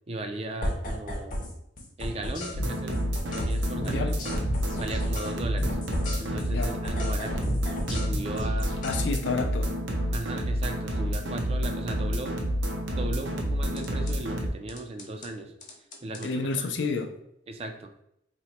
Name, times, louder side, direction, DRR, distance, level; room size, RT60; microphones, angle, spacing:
voice 1, 0.1-1.4 2.0-4.2 4.8-5.8 6.2-7.5 7.9-8.7 10.1-12.4 12.9-15.5 16.0-16.7 17.5-17.9, right 2 dB, 35° right, 0.4 m, -37 dB
sound 1, 0.6-1.5 1.8-5.3 5.6-9.0 13.8-14.1 14.7-15.3 15.6-16.3, left 1 dB, 45° left, 0.7 m, -34 dB
sound 2, 2.5-14.5, equal, 75° right, 0.7 m, -29 dB
voice 2, 3.9-4.2 6.5-6.7 8.8-9.7 16.2-17.1, left 4 dB, 70° left, 0.4 m, -30 dB
2.9 x 2.1 x 4.0 m
head